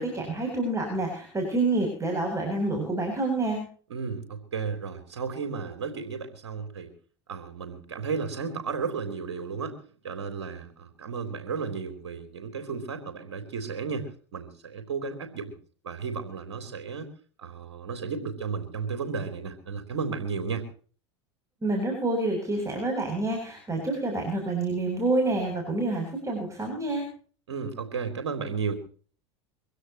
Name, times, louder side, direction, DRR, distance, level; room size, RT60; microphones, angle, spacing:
voice 1, 0.0-3.6 21.6-27.1, right 2 dB, 20° right, 2 dB, 7.9 m, -28 dB
voice 2, 3.9-6.9 7.3-9.8 10.0-15.6 15.8-17.1 17.4-20.7 27.5-28.7, right 5 dB, 80° right, 7 dB, 3.6 m, -33 dB
24.0 x 16.0 x 3.1 m, 0.42 s
hypercardioid pair, 85°, 14 cm